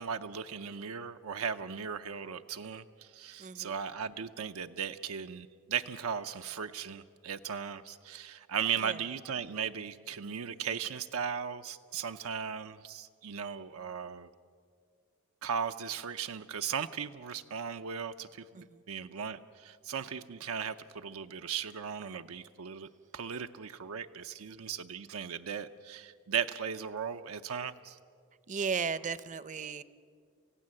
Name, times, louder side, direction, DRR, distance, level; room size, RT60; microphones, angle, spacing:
voice 1, 0.0-14.3 15.4-28.0, right 7 dB, 85° right, 7 dB, 0.6 m, -37 dB
voice 2, 3.4-3.8 8.8-9.0 18.5-18.8 28.5-29.8, right 5 dB, 35° right, 16 dB, 0.6 m, -35 dB
28.5 x 16.0 x 7.6 m, 2.1 s
head